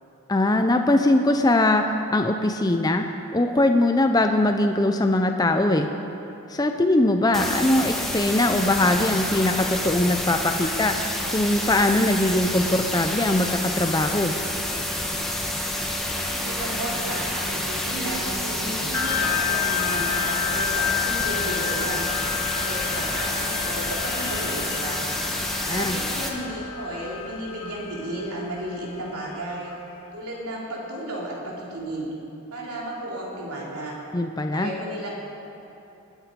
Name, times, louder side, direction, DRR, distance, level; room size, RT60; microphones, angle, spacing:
voice 1, 0.3-5.9 6.5-11.0 11.3-14.3 25.6-26.0 34.1-34.7, left 1 dB, 15° left, 5 dB, 0.5 m, -21 dB
sound 1, 7.3-26.3, left 1 dB, ahead, 1.0 m, -28 dB
voice 2, 16.1-22.1 22.5-25.0 25.7-29.7 30.1-32.1 32.5-34.0 34.5-35.1, right 1 dB, 85° right, -4 dB, 3.3 m, -33 dB
sound 2, 18.9-29.8, left 9 dB, 85° left, 1.3 m, -30 dB
20.5 x 9.0 x 5.2 m, 2.9 s
head